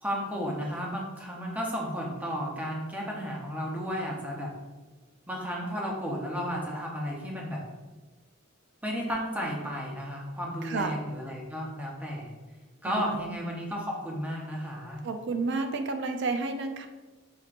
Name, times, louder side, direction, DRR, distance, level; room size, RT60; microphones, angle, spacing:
voice 1, 0.0-4.5 5.3-7.6 8.8-12.3 12.8-15.0, equal, 10° right, -2 dB, 0.7 m, -33 dB
voice 2, 10.6-10.9 12.8-13.4 15.0-16.9, right 3 dB, 60° right, 6 dB, 0.4 m, -31 dB
5.8 x 2.9 x 2.5 m, 1.2 s
head